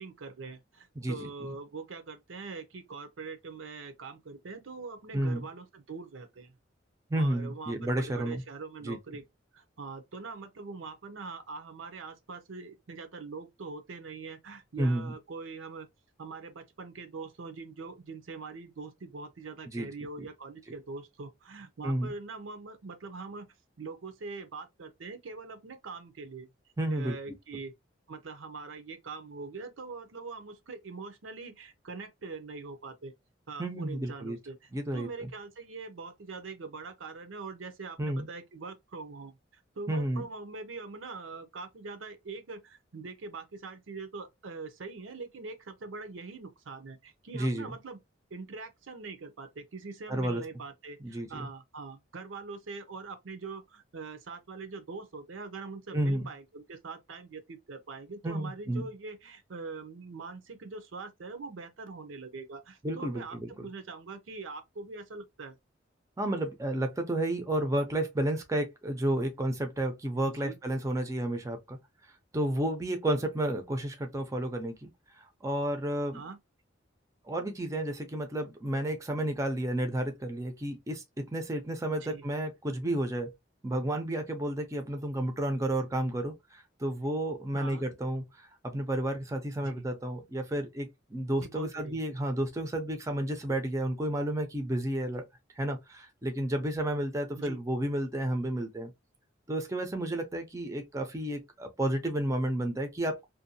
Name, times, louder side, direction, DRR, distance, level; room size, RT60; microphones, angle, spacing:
voice 1, 0.0-6.5 7.2-9.2 9.5-15.9 16.2-23.5 23.8-26.5 26.9-27.7 28.1-33.1 33.5-48.0 48.3-65.6 70.3-70.6 76.1-76.4 82.0-82.2 87.5-87.8 89.6-89.9 91.4-92.0 97.3-97.6, right 4 dB, 85° right, 0.6 m, -43 dB
voice 2, 1.0-1.3 5.1-5.5 7.1-8.4 8.8-9.0 14.8-15.1 19.7-19.9 21.8-22.1 26.8-27.2 33.6-34.4 34.7-35.3 38.0-38.3 39.9-40.2 47.3-47.7 50.1-50.4 51.0-51.5 55.9-56.3 58.2-58.8 62.8-63.7 66.2-71.8 72.3-76.2 77.2-83.3 83.6-95.3 95.6-98.9 99.5-103.3, right 1 dB, 15° right, 0.5 m, -31 dB
2.6 x 2.2 x 2.6 m
head